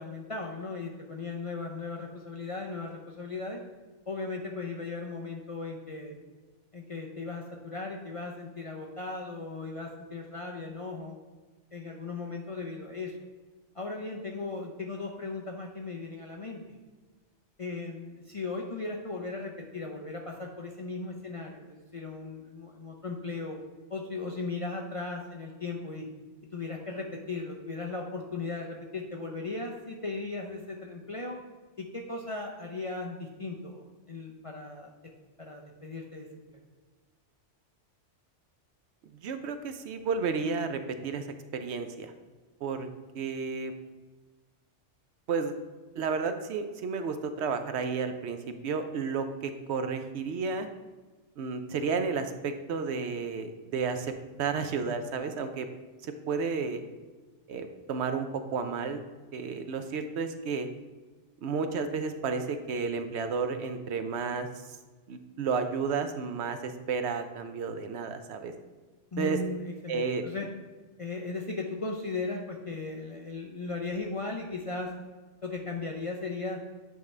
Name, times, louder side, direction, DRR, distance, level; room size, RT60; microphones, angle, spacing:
voice 1, 0.0-3.6 4.1-6.1 6.7-11.2 11.7-13.2 13.7-16.6 17.6-23.6 23.9-26.0 26.5-31.4 31.8-34.9 35.4-36.6 69.1-70.5 71.0-74.9 75.4-76.6, left 3 dB, 40° left, 0 dB, 0.5 m, -37 dB
voice 2, 39.2-41.3 41.5-42.1 42.6-42.9 43.1-43.7 45.3-45.5 46.0-48.4 48.6-50.7 51.4-54.1 54.4-55.7 56.0-56.8 57.5-59.0 59.3-60.7 61.4-64.5 65.1-68.5 69.2-69.4 69.9-70.3, right 5 dB, 70° right, 8 dB, 0.8 m, -32 dB
8.3 x 4.7 x 3.2 m, 1.3 s
omnidirectional pair, 1.2 m